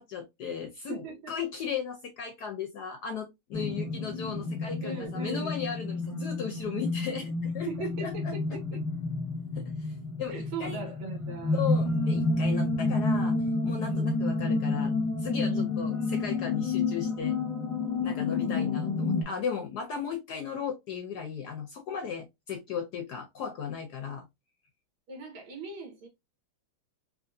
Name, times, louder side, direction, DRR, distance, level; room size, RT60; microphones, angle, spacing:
voice 1, 0.0-8.3 9.5-10.8 11.5-13.4 13.6-17.4 18.0-24.3, left 7 dB, 70° left, 0.9 m, -36 dB
voice 2, 0.9-1.3 4.8-5.6 7.7-8.8 10.3-11.6 13.8-14.1 15.4-16.1 25.1-26.1, right 4 dB, 80° right, 2.2 m, -39 dB
sound 1, 3.5-19.2, left 3 dB, 10° left, 1.0 m, -30 dB
4.7 x 2.8 x 2.5 m
omnidirectional pair, 2.3 m